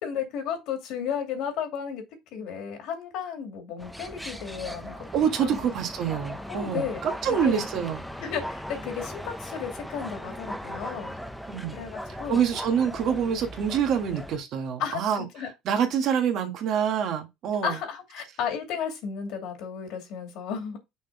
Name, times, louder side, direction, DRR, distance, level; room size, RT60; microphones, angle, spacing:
voice 1, 0.0-2.0 2.3-5.0 5.4-5.6 6.5-7.0 7.3-7.6 8.2-11.1 11.7-12.4 14.8-15.5 17.6-20.8, left 7 dB, 70° left, 2.4 m, -33 dB
sound 1, 3.8-14.4, equal, ahead, 0.6 m, -38 dB
voice 2, 5.1-8.0 11.5-11.8 12.3-15.2 15.6-17.8, right 8 dB, 55° right, 1.5 m, -26 dB
6.2 x 3.8 x 4.7 m
cardioid pair, 145°, 0 cm